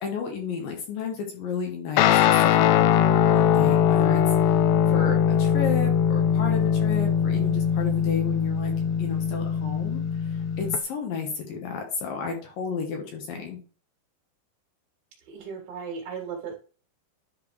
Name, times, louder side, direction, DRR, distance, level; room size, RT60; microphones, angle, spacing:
voice 1, 0.0-8.7 9.0-13.6, left 5 dB, 65° left, 2 dB, 2.6 m, -33 dB
Guitar, 2.0-10.8, left 8 dB, 85° left, 2.7 m, -21 dB
voice 2, 15.3-16.5, right 6 dB, 60° right, -2 dB, 3.4 m, -36 dB
11.0 x 4.7 x 3.2 m, 0.38 s
omnidirectional pair, 4.9 m